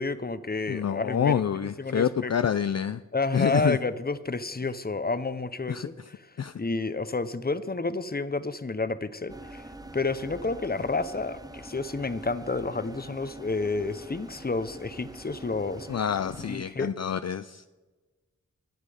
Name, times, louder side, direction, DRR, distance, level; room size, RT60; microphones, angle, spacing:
voice 1, 0.0-2.5 3.1-6.3 6.6-16.0 16.5-16.9, left 3 dB, 30° left, 14 dB, 0.8 m, -30 dB
voice 2, 0.7-3.0 3.3-3.8 5.7-6.1 6.4-6.5 15.9-17.7, left 8 dB, 55° left, 12 dB, 0.4 m, -27 dB
sound 1, 9.3-16.6, right 2 dB, 10° right, 0.7 m, -45 dB
20.0 x 7.5 x 5.0 m, 1.2 s
wide cardioid pair, 55°, 32 cm